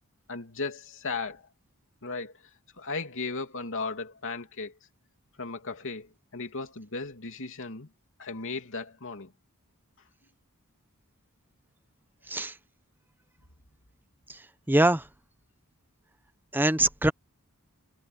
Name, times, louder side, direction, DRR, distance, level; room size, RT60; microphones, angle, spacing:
voice 1, 0.3-1.4 2.0-2.3 2.8-4.7 5.4-7.9 8.2-9.3, left 4 dB, 60° left, 2.9 m, -36 dB
voice 2, 14.7-15.0 16.5-17.1, right 1 dB, 10° right, 0.9 m, -23 dB
head